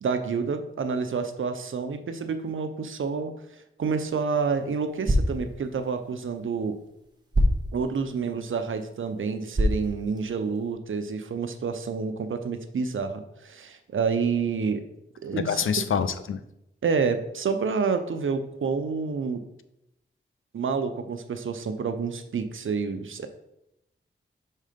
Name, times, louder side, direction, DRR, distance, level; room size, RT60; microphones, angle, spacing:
voice 1, 0.0-3.3 3.8-6.8 7.7-14.8 15.2-15.6 16.8-19.4 20.5-23.3, right 5 dB, 70° right, 8 dB, 0.6 m, -28 dB
sound 1, 3.8-10.7, equal, 20° right, 0.9 m, -30 dB
voice 2, 15.3-16.4, left 7 dB, 75° left, 11 dB, 0.5 m, -26 dB
5.5 x 3.7 x 5.0 m, 0.83 s
wide cardioid pair, 120°, 21 cm